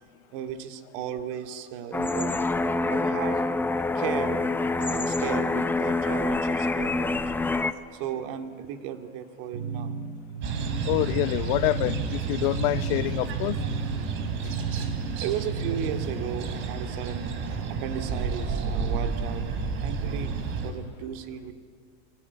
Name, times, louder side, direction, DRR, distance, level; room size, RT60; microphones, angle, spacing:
voice 1, 0.3-2.4 2.9-3.4 3.7-4.5 4.8-7.2 7.9-10.0 15.1-17.3 17.7-20.3 20.6-21.5, right 9 dB, 60° right, 2.3 m, -35 dB
sound 1, 1.9-7.7, left 3 dB, 5° left, 0.6 m, -26 dB
sound 2, 9.5-16.3, right 4 dB, 85° right, 3.0 m, -34 dB
sound 3, 10.4-20.7, right 5 dB, 40° right, 3.5 m, -31 dB
voice 2, 10.8-13.6 14.4-14.5, left 19 dB, 55° left, 0.7 m, -26 dB
28.5 x 22.0 x 9.5 m
supercardioid pair, 155°, 32 cm